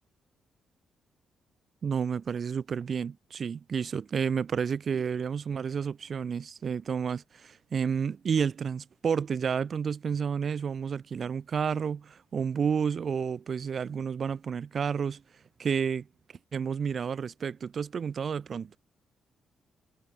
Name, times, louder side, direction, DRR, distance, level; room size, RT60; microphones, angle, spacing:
voice 1, 1.8-15.2 15.6-16.1 16.5-18.7, right 6 dB, 40° right, 0.3 m, -30 dB
cardioid pair, 150°, 0 cm